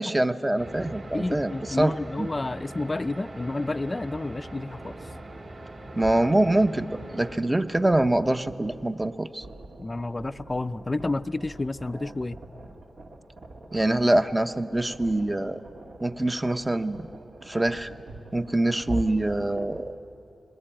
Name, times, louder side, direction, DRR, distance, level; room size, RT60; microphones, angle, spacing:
voice 1, 0.0-2.3 6.0-9.4 13.7-15.6 16.0-17.1 17.4-17.9 18.3-19.9, right 1 dB, 15° right, 10 dB, 0.7 m, -24 dB
sound 1, 0.6-7.4, right 1 dB, 45° right, 1.9 m, -41 dB
voice 2, 1.1-5.0 9.8-12.4, left 2 dB, 25° left, 14 dB, 0.4 m, -30 dB
sound 2, 4.3-19.8, right 2 dB, 70° right, 1.8 m, -43 dB
21.0 x 19.0 x 8.9 m, 2.8 s
wide cardioid pair, 90°, 0 cm